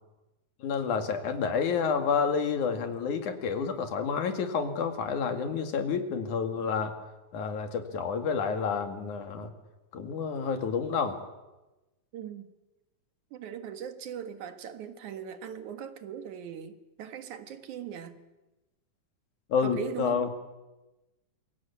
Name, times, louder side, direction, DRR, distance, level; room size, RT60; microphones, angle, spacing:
voice 1, 0.6-6.9 7.3-9.5 9.9-11.2 19.5-20.3, left 6 dB, 80° left, 7 dB, 3.7 m, -29 dB
voice 2, 12.1-12.5 13.3-18.2 19.6-20.3, right 8 dB, 75° right, 9 dB, 3.0 m, -39 dB
27.0 x 22.5 x 8.5 m, 1.1 s
omnidirectional pair, 3.4 m